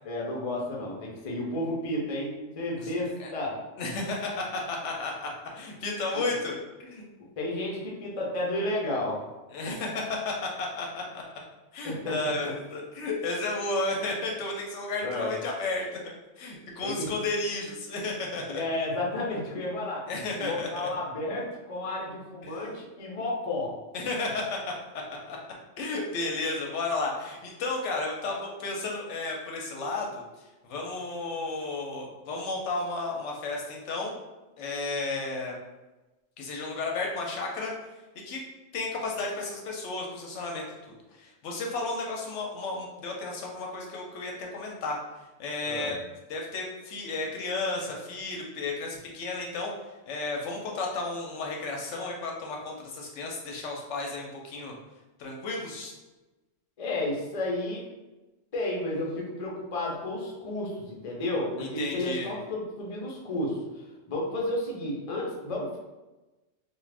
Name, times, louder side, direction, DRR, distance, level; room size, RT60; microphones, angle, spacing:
voice 1, 0.0-3.6 6.1-6.2 7.4-9.2 11.8-12.5 15.0-15.3 16.8-17.1 18.5-20.0 20.4-23.7 45.7-45.9 56.8-57.9 58.5-63.6 64.1-65.8, left 1 dB, 45° left, -3 dB, 0.5 m, -32 dB
voice 2, 3.8-7.0 9.5-11.2 11.7-16.0 16.4-18.6 20.1-20.9 22.4-22.6 23.9-25.4 25.8-30.2 30.6-34.1 34.6-35.6 36.4-37.7 38.2-38.4 38.7-40.6 41.1-45.0 45.4-46.0 46.3-49.7 50.1-54.7 55.2-55.9 61.6-62.3, left 3 dB, 70° left, 0 dB, 0.8 m, -33 dB
2.4 x 2.4 x 3.2 m, 1.1 s
omnidirectional pair, 1.3 m